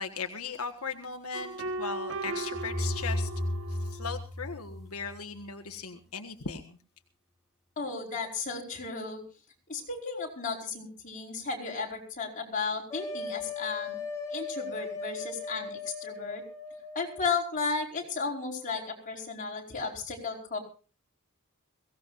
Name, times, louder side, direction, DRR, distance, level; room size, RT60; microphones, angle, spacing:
voice 1, 0.0-3.3 3.7-6.8, left 5 dB, 90° left, 5 dB, 1.6 m, -38 dB
sound 1, 1.3-4.2, right 2 dB, 65° right, 1.6 m, -37 dB
sound 2, 2.5-5.4, left 1 dB, ahead, 2.0 m, -34 dB
voice 2, 7.8-9.2 9.7-14.0 14.3-16.4 16.9-20.6, left 4 dB, 40° left, 0 dB, 4.9 m, -34 dB
sound 3, 12.9-17.3, left 4 dB, 15° left, 5.5 m, -38 dB
22.5 x 17.0 x 2.6 m, 0.36 s
head